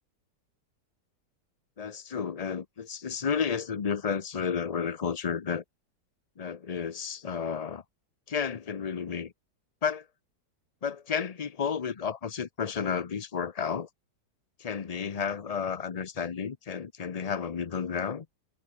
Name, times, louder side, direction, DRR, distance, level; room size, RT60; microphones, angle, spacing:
voice 1, 1.8-5.6 6.4-7.8 8.3-9.3 9.8-10.1 10.8-13.9 14.6-18.3, left 6 dB, 75° left, 0.3 m, -32 dB
omnidirectional pair, 1.8 m